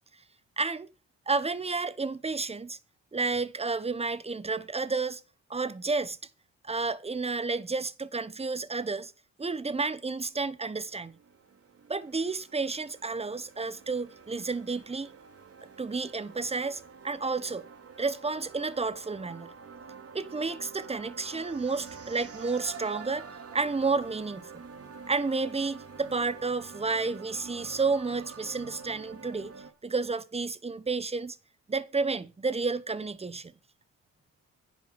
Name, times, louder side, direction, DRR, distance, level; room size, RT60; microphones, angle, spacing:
voice 1, 0.6-0.9 1.3-2.8 3.1-5.2 5.5-6.2 6.6-9.1 9.4-11.1 11.9-15.1 15.8-17.7 18.0-19.5 20.1-24.5 25.1-29.5 29.8-31.4 31.7-33.5, right 4 dB, 20° right, 1.1 m, -31 dB
sound 1, 10.5-29.7, right 5 dB, 50° right, 2.6 m, -47 dB
10.5 x 7.6 x 7.0 m
cardioid pair, 90°, 30 cm